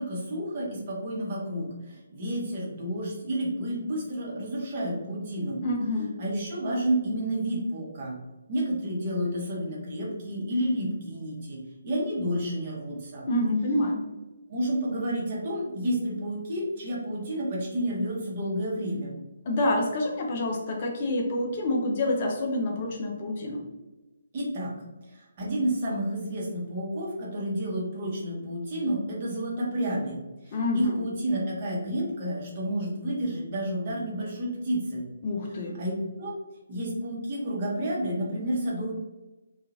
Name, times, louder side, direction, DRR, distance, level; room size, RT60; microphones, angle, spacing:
voice 1, 0.0-5.6 6.2-8.2 8.5-13.3 14.5-19.1 24.3-24.7 25.1-30.2 30.4-35.0 35.8-35.9 36.2-36.3 36.7-38.9, right 1 dB, 35° right, -4 dB, 0.9 m, -30 dB
voice 2, 5.6-6.2 13.3-14.0 19.5-23.7 30.5-31.0 35.2-35.8, left 1 dB, 40° left, 1 dB, 0.4 m, -27 dB
2.8 x 2.4 x 2.5 m, 1.1 s
figure-of-eight pair, 140°, 0 cm